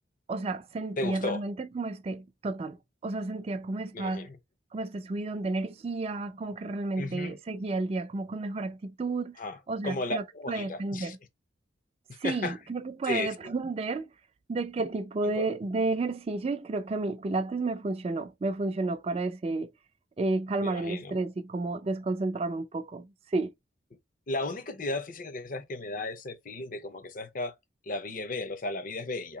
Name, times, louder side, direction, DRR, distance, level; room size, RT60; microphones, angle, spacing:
voice 1, 0.3-2.8 3.0-4.3 4.7-9.4 9.7-11.2 12.2-14.1 14.5-19.7 20.2-23.5, right 3 dB, 30° right, 0.3 m, -31 dB
voice 2, 1.0-1.4 3.9-4.4 7.0-7.3 9.4-9.6 9.8-11.1 12.2-12.6 13.1-13.3 15.2-15.5 20.6-21.2 24.3-27.5 27.9-29.4, left 2 dB, 45° left, 0.6 m, -34 dB
2.9 x 2.7 x 3.8 m
head